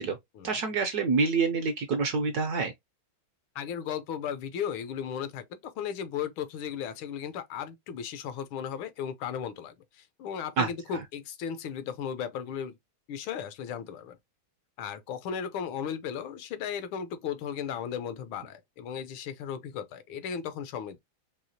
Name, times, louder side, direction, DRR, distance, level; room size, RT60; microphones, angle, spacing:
voice 1, 0.4-2.7 10.6-10.7, right 4 dB, 70° right, 0.9 m, -27 dB
voice 2, 3.5-12.7 13.1-14.2 14.8-21.0, left 8 dB, 85° left, 1.5 m, -36 dB
4.7 x 2.8 x 2.7 m
omnidirectional pair, 2.2 m